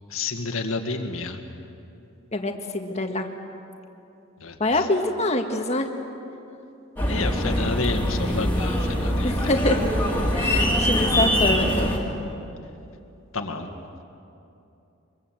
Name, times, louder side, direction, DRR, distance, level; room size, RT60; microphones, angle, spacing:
voice 1, 0.1-1.4 4.4-4.9 7.1-9.5 13.3-13.7, left 3 dB, 80° left, 5 dB, 2.0 m, -30 dB
voice 2, 2.3-3.3 4.6-5.9 9.2-9.8 10.3-11.9, left 2 dB, 30° left, 4 dB, 1.7 m, -25 dB
sound 1, 7.0-12.0, equal, 10° left, 3.5 m, -23 dB
24.5 x 22.5 x 7.6 m, 2.8 s
head